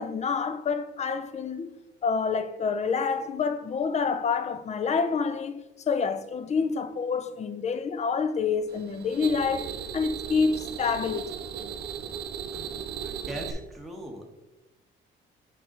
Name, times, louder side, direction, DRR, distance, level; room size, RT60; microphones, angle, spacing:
voice 1, 0.0-1.7 2.0-11.3, left 5 dB, 35° left, 0.5 m, -28 dB
sound 1, 8.7-13.5, right 8 dB, 55° right, 0.5 m, -37 dB
voice 2, 13.0-14.3, equal, ahead, 1.1 m, -40 dB
6.3 x 4.5 x 3.8 m
cardioid pair, 90°, 20 cm